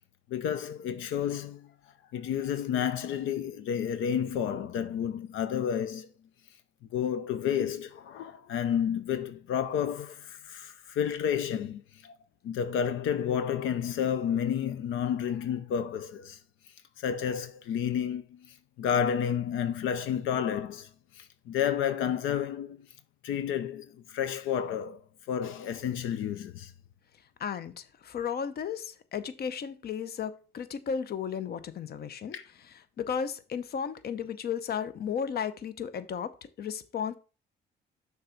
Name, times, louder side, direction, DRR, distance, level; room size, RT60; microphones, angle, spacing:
voice 1, 0.3-1.7 2.1-6.1 6.9-12.2 12.4-16.4 17.0-22.9 23.2-25.0 25.3-26.7 32.3-32.4, left 8 dB, 85° left, 0.6 m, -31 dB
voice 2, 27.4-32.4 33.0-37.2, left 7 dB, 50° left, 0.7 m, -34 dB
6.5 x 3.5 x 5.6 m
cardioid pair, 90°, 20 cm